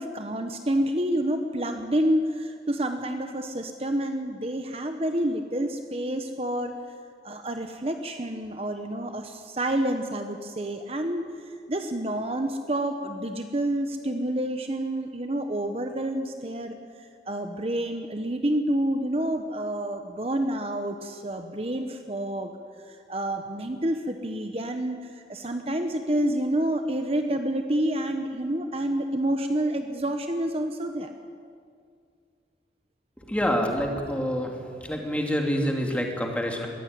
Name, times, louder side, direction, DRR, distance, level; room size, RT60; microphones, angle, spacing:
voice 1, 0.0-6.8 7.2-16.8 17.3-22.5 22.9-31.1, right 1 dB, 35° right, 6 dB, 1.1 m, -28 dB
voice 2, 33.2-34.5 34.8-36.7, equal, 10° left, 1 dB, 2.5 m, -27 dB
22.0 x 15.5 x 9.5 m, 2.2 s
head